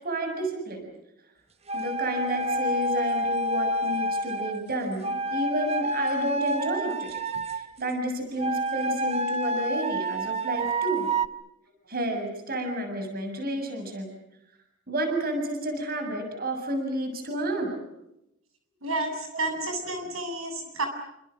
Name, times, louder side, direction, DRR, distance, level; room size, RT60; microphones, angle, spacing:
voice 1, 0.0-0.9 1.7-7.2 7.5-11.1 11.9-14.1 14.9-17.8 19.3-19.4, right 1 dB, 45° right, 5 dB, 7.0 m, -30 dB
sound 1, 1.7-4.6 5.0-7.7 8.4-11.3, right 1 dB, 30° right, 1.4 m, -28 dB
voice 2, 18.8-20.9, right 2 dB, 80° right, 5 dB, 7.7 m, -30 dB
29.5 x 27.5 x 6.5 m, 0.83 s
head